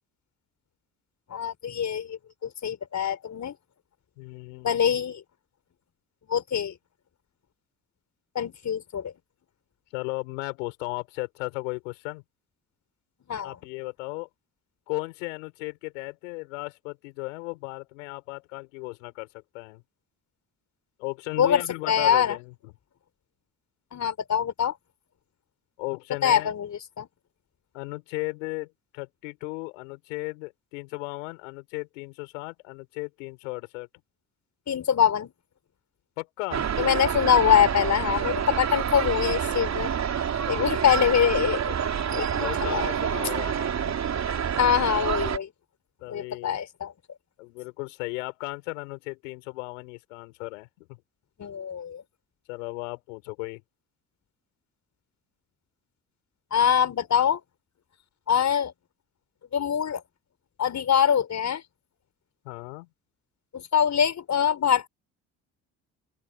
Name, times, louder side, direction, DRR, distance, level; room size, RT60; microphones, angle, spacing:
voice 1, 1.3-3.5 4.6-5.2 6.3-6.8 8.3-9.1 13.3-13.6 21.4-22.4 23.9-24.7 26.2-27.1 34.7-35.3 36.8-39.9 40.5-41.7 42.1-42.3 42.7-42.9 44.6-45.5 46.1-46.9 51.4-52.0 56.5-57.4 58.3-58.7 59.5-60.0 60.6-61.6 63.5-64.9, left 8 dB, 50° left, 5.0 m, -24 dB
voice 2, 4.2-4.8 9.9-12.2 13.4-14.3 14.9-19.3 19.5-19.8 21.0-22.7 25.8-26.5 27.7-33.9 36.2-36.7 40.5-40.8 42.3-43.9 46.0-46.6 47.4-51.0 52.5-53.6 62.4-62.9, left 27 dB, 80° left, 5.1 m, -36 dB
sound 1, 36.5-45.4, right 8 dB, 45° right, 3.9 m, -28 dB
open air
hypercardioid pair, 55°, 37 cm